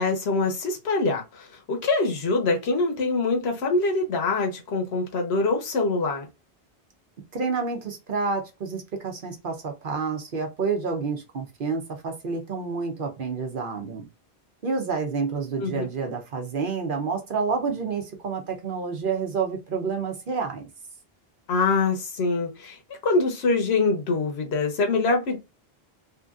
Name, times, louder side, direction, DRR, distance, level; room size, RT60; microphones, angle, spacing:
voice 1, 0.0-6.3 15.6-15.9 21.5-25.4, left 3 dB, 85° left, 1.0 m, -24 dB
voice 2, 7.3-14.0 14.6-20.7, right 5 dB, 60° right, 0.9 m, -29 dB
2.9 x 2.6 x 2.4 m
omnidirectional pair, 1.0 m